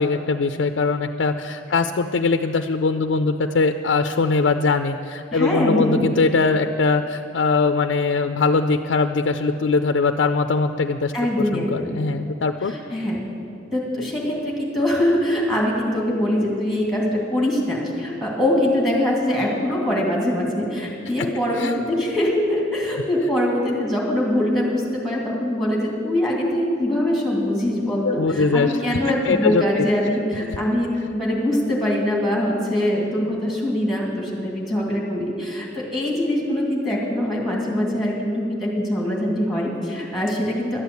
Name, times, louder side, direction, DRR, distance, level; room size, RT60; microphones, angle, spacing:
voice 1, 0.0-12.7 21.5-21.7 28.0-29.0 29.2-29.9 30.5-30.6, left 4 dB, 65° left, 7 dB, 0.4 m, -21 dB
voice 2, 5.3-6.1 11.1-12.0 12.6-13.2 13.7-40.8, left 1 dB, ahead, -3 dB, 2.5 m, -23 dB
12.0 x 8.1 x 8.2 m, 2.6 s
head